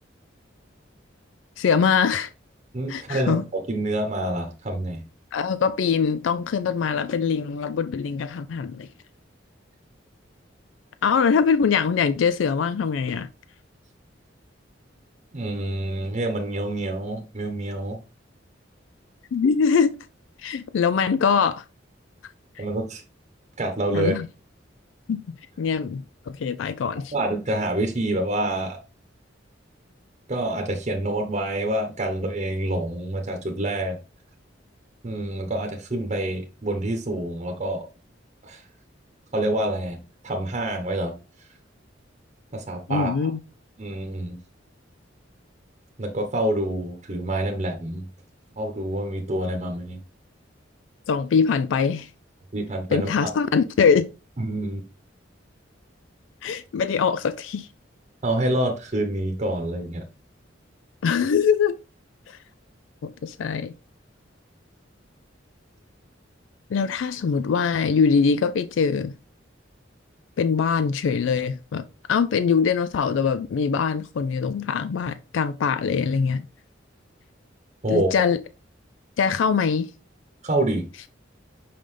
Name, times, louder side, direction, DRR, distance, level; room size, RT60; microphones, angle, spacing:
voice 1, 1.6-2.3 2.9-3.4 5.3-8.9 11.0-13.3 19.3-19.9 20.4-21.6 22.6-22.7 23.9-24.3 25.1-27.1 42.9-43.4 51.1-52.1 52.9-54.1 56.4-57.7 61.0-61.8 62.3-62.4 63.0-63.7 66.7-69.1 70.4-76.5 77.9-78.4 79.2-79.9, left 6 dB, 80° left, 0.4 m, -23 dB
voice 2, 2.7-5.0 15.3-18.0 22.6-23.0 23.6-24.1 27.1-28.8 30.3-34.0 35.0-37.8 38.4-38.6 39.3-40.0 40.2-41.1 42.5-43.3 43.8-44.4 46.0-48.1 48.6-50.0 52.5-53.1 54.4-54.8 58.2-60.0 77.8-78.1 80.4-80.8, right 1 dB, 35° right, 0.9 m, -27 dB
5.6 x 5.1 x 3.3 m
head